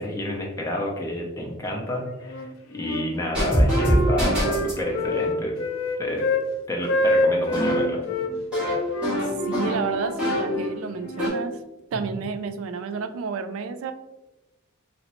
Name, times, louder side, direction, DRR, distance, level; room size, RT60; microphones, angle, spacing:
voice 1, 0.0-5.6 6.0-6.3 6.7-8.0 11.9-12.0, equal, 15° left, -2 dB, 0.6 m, -30 dB
Wind instrument woodwind instrument, 2.2-3.1 3.4-6.5 6.8-8.3 8.9-11.4, left 1 dB, 65° left, 0.4 m, -26 dB
sound 1, 3.3-4.8 7.5-10.7 11.0-11.3, equal, 5° right, 1.5 m, -24 dB
voice 2, 9.5-11.6 11.9-13.9, right 5 dB, 65° right, 10 dB, 0.3 m, -30 dB
3.1 x 3.0 x 2.9 m, 1.0 s
head